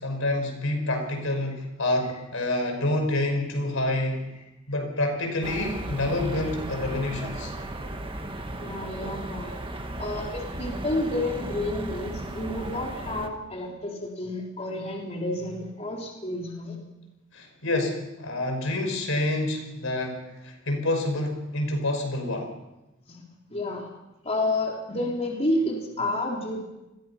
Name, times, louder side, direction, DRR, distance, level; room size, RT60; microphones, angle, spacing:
voice 1, 0.0-4.2 4.7-7.5 17.3-22.5, left 1 dB, 75° left, 4 dB, 5.7 m, -28 dB
sound 1, 5.4-13.3, right 1 dB, 25° right, 1.9 m, -35 dB
voice 2, 8.6-16.8 23.1-23.2 23.5-23.9 24.2-26.6, left 1 dB, 30° left, -1 dB, 3.7 m, -30 dB
29.5 x 21.5 x 5.9 m, 1.0 s
head